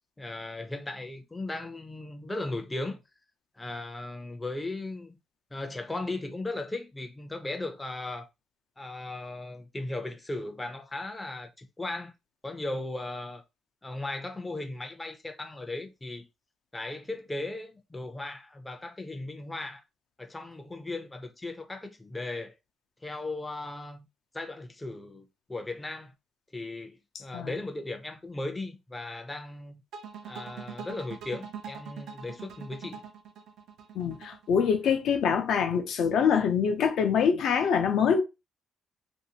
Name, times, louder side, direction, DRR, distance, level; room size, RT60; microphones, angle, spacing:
voice 1, 0.2-3.0 3.6-5.2 5.5-8.3 8.8-12.1 12.4-13.4 13.8-16.3 16.7-19.8 20.2-22.5 23.0-24.1 24.3-26.1 26.5-29.8 30.2-33.0, left 2 dB, 15° left, 0.5 m, -37 dB
sound 1, 29.9-35.0, right 6 dB, 90° right, 0.6 m, -43 dB
voice 2, 34.0-38.2, left 7 dB, 75° left, 0.6 m, -24 dB
3.1 x 2.6 x 2.8 m
cardioid pair, 130°, 0 cm